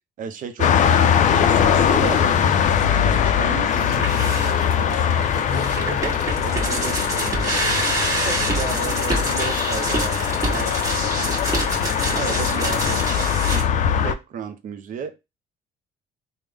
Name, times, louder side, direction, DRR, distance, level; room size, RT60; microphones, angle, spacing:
voice 1, 0.2-2.3 2.8-7.7 8.2-11.4 12.1-15.2, right 7 dB, 50° right, 0.6 m, -34 dB
sound 1, 0.6-14.1, left 8 dB, 45° left, 0.4 m, -21 dB
sound 2, 3.7-13.6, right 1 dB, 20° right, 1.3 m, -27 dB
3.5 x 2.1 x 3.3 m
cardioid pair, 110°, 17 cm